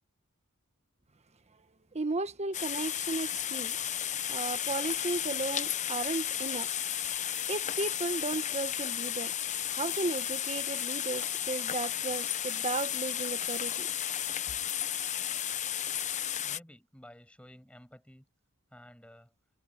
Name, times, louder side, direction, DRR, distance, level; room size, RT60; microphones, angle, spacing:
voice 1, 1.9-3.8 4.3-6.7 7.5-9.3 9.7-13.9, right 3 dB, 30° right, 1.3 m, -35 dB
sound 1, 2.5-16.6, left 10 dB, 35° left, 0.6 m, -33 dB
voice 2, 16.4-18.3 18.7-19.3, equal, 5° left, 7.6 m, -53 dB
head